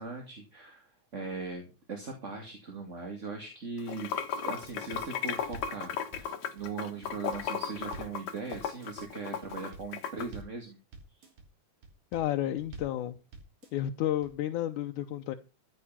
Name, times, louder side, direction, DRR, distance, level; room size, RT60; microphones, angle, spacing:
voice 1, 0.0-4.1 4.4-5.9 6.2-10.8 11.1-11.2, right 4 dB, 25° right, 2.4 m, -39 dB
Water / Sink (filling or washing), 3.8-10.3, left 7 dB, 65° left, 2.5 m, -35 dB
sound 1, 4.6-5.1 5.4-5.8 6.1-6.7 7.0-7.5 7.8-8.2 8.5-9.1 9.4-9.9 10.2-10.6 10.9-11.5 11.8-12.3 12.6-13.0 13.3-13.9 14.2-14.3, right 3 dB, 70° right, 4.4 m, -47 dB
voice 2, 12.1-13.2 13.7-15.4, left 12 dB, 85° left, 2.3 m, -31 dB
14.5 x 8.0 x 5.7 m
omnidirectional pair, 3.5 m